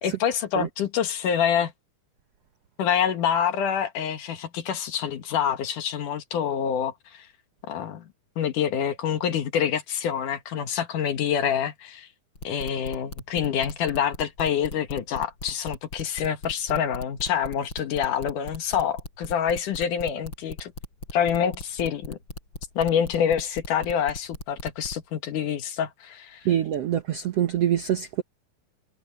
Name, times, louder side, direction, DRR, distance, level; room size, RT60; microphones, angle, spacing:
voice 1, 0.0-1.7 2.8-7.3 7.7-8.1 8.4-12.1 12.4-20.7 21.1-22.2 22.8-26.5, left 8 dB, 65° left, 2.8 m, -26 dB
sound 1, 12.4-25.0, left 2 dB, 30° left, 8.3 m, -37 dB
voice 2, 26.5-28.2, right 10 dB, 85° right, 1.4 m, -24 dB
omnidirectional pair, 4.4 m